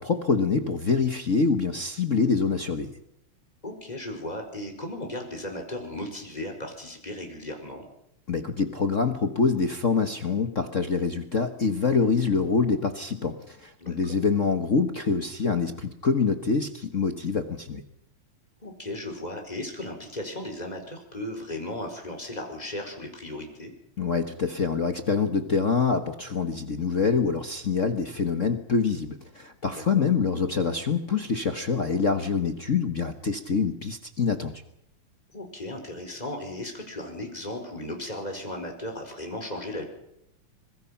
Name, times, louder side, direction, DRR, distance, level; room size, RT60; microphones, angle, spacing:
voice 1, 0.0-2.9 8.3-17.8 24.0-34.5, left 5 dB, 55° left, 7 dB, 0.8 m, -25 dB
voice 2, 3.6-7.8 13.8-14.2 18.6-23.7 29.6-30.0 35.3-39.8, left 1 dB, 15° left, 3 dB, 4.7 m, -36 dB
26.0 x 22.0 x 5.8 m, 0.78 s
omnidirectional pair, 3.4 m